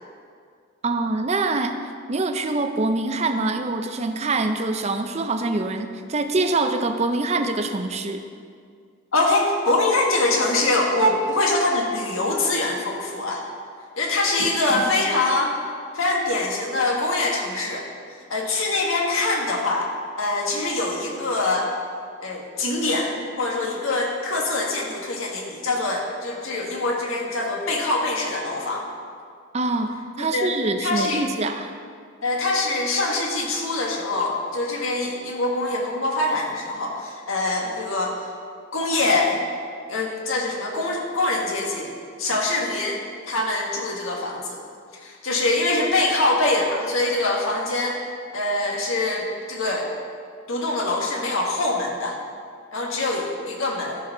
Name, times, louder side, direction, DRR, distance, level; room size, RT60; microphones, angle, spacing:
voice 1, 0.8-1.8 2.1-8.2 14.4-14.9 29.5-31.7, right 2 dB, 30° right, 7 dB, 0.5 m, -25 dB
voice 2, 9.1-13.4 14.0-15.6 15.9-17.9 18.3-19.9 20.2-21.7 22.2-28.9 30.3-30.5 30.8-31.2 32.2-38.3 38.7-39.4 39.9-41.9 42.2-43.0 43.3-44.6 44.9-48.0 48.3-49.9 50.5-52.2 52.7-54.0, left 2 dB, 85° left, -1 dB, 1.7 m, -24 dB
13.5 x 4.8 x 5.9 m, 2.2 s
head